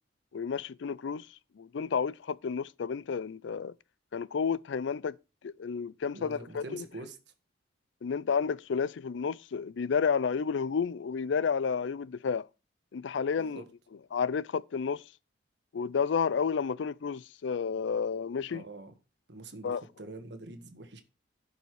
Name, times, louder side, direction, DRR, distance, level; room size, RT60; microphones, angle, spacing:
voice 1, 0.3-3.7 4.1-5.2 5.4-6.9 8.0-12.5 12.9-13.6 14.1-15.0 15.7-18.6 19.6-19.8, left 6 dB, 70° left, 0.4 m, -31 dB
voice 2, 6.1-7.1 13.4-13.6 18.5-18.9 19.3-21.0, right 2 dB, 60° right, 1.5 m, -45 dB
11.5 x 5.5 x 4.8 m
head